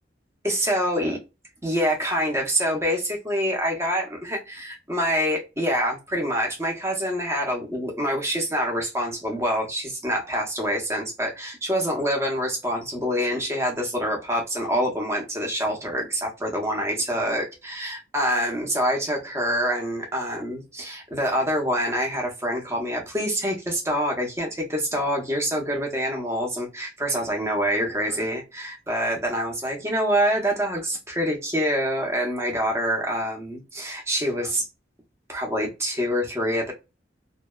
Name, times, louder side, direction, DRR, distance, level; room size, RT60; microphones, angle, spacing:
voice 1, 0.4-1.2 1.6-34.6 35.3-36.7, equal, 15° right, 0 dB, 0.7 m, -26 dB
2.6 x 2.1 x 2.2 m, 0.27 s
head